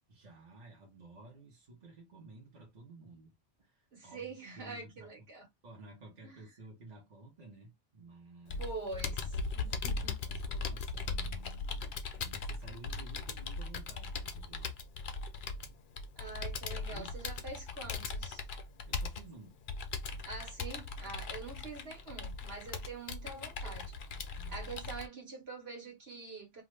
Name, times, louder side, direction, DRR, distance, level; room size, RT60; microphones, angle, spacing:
voice 1, 0.1-5.1 5.6-8.6 9.7-14.7 15.6-15.8 16.7-17.1 18.9-19.6 21.1-21.2 21.5-21.8 24.4-24.7, right 2 dB, 35° right, 1.2 m, -54 dB
voice 2, 3.9-5.5 6.2-6.4 8.6-10.2 16.2-18.4 20.2-24.0 24.5-26.6, right 3 dB, 60° right, 1.6 m, -45 dB
Computer keyboard, 8.5-25.1, left 4 dB, 55° left, 0.6 m, -39 dB
2.7 x 2.5 x 3.2 m
omnidirectional pair, 1.2 m